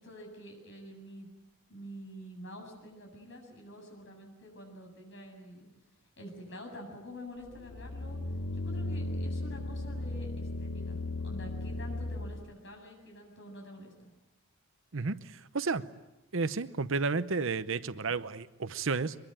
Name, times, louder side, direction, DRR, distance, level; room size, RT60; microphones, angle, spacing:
voice 1, 0.0-1.3 1.7-5.7 6.2-8.2 8.6-14.1, equal, 55° left, 2 dB, 7.8 m, -47 dB
sound 1, 7.4-12.5, left 2 dB, 80° left, 1.1 m, -36 dB
voice 2, 14.9-15.9 16.3-19.2, right 4 dB, 60° right, 14 dB, 0.8 m, -32 dB
24.0 x 22.5 x 9.0 m, 0.99 s
head